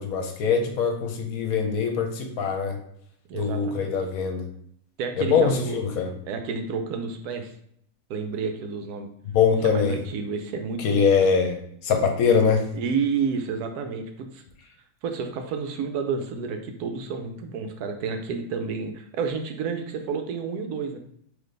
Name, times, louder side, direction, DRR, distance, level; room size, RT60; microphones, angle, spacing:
voice 1, 0.0-2.8 3.3-4.5 5.2-6.1 9.3-10.0 10.8-12.7, left 6 dB, 70° left, 4 dB, 1.1 m, -23 dB
voice 2, 3.3-3.9 5.0-5.8 6.3-7.5 8.1-9.1 9.6-11.1 12.7-14.4 15.0-21.0, right 5 dB, 85° right, 6 dB, 1.1 m, -30 dB
3.9 x 2.9 x 3.2 m, 0.68 s
omnidirectional pair, 1.6 m